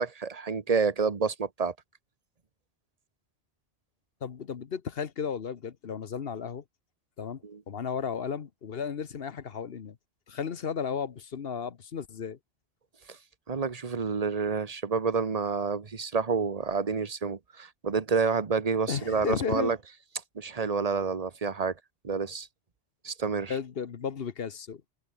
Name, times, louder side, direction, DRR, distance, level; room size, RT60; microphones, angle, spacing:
voice 1, 0.0-1.7 7.4-7.6 13.1-13.2 13.5-19.8 20.3-21.8 22.0-22.5 23.0-23.5, right 5 dB, 35° right, 1.2 m, -29 dB
voice 2, 4.2-6.6 7.2-10.0 10.3-12.4 18.9-19.7 23.5-24.8, left 6 dB, 55° left, 1.2 m, -34 dB
omnidirectional pair, 1.2 m